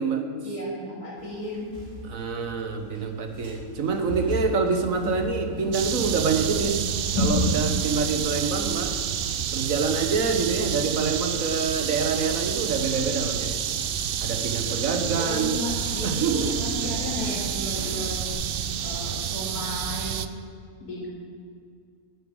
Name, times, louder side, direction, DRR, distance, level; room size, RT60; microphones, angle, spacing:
voice 1, 0.4-1.7 15.1-18.2 18.8-20.2 20.8-21.1, left 1 dB, 75° left, -5 dB, 3.6 m, -34 dB
sound 1, 1.2-18.3, left 2 dB, 25° right, 4.3 m, -36 dB
voice 2, 2.1-6.9 7.2-8.9 9.5-13.5 14.2-15.5 16.0-16.5, right 5 dB, 60° right, 6 dB, 1.5 m, -26 dB
sound 2, 5.7-20.3, right 9 dB, 85° right, 0.5 m, -29 dB
9.9 x 9.2 x 8.9 m, 2.3 s
omnidirectional pair, 1.6 m